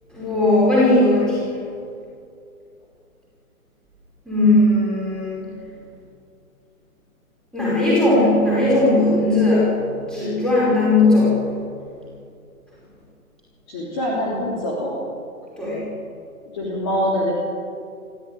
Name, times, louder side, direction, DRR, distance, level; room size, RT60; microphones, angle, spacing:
voice 1, 0.1-1.5 4.3-5.4 7.5-11.6 15.6-15.9, left 2 dB, ahead, -8 dB, 5.2 m, -18 dB
voice 2, 13.7-15.0 16.5-17.3, equal, 20° left, -5 dB, 3.1 m, -24 dB
24.0 x 14.5 x 9.9 m, 2.4 s
hypercardioid pair, 170°, 44 cm